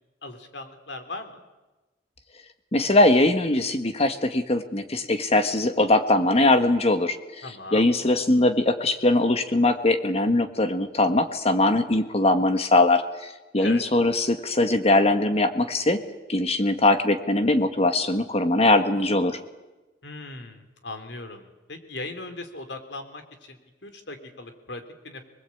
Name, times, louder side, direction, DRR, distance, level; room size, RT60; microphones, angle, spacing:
voice 1, 0.2-1.4 7.4-7.9 13.6-13.8 20.0-25.3, left 2 dB, 70° left, 7 dB, 3.4 m, -38 dB
voice 2, 2.7-7.2 7.7-16.0 16.3-19.4, left 2 dB, 35° left, 9 dB, 1.6 m, -21 dB
26.0 x 21.0 x 8.6 m, 1.1 s
head